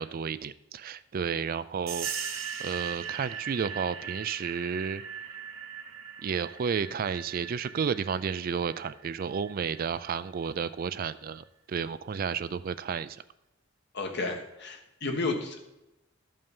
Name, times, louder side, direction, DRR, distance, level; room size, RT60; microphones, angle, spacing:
voice 1, 0.0-5.0 6.2-13.2, right 6 dB, 45° right, 15 dB, 0.4 m, -32 dB
sound 1, 1.9-10.2, right 8 dB, 80° right, 0.9 m, -40 dB
voice 2, 13.9-15.6, left 3 dB, 60° left, 4 dB, 1.5 m, -32 dB
12.5 x 5.5 x 5.4 m, 0.94 s
head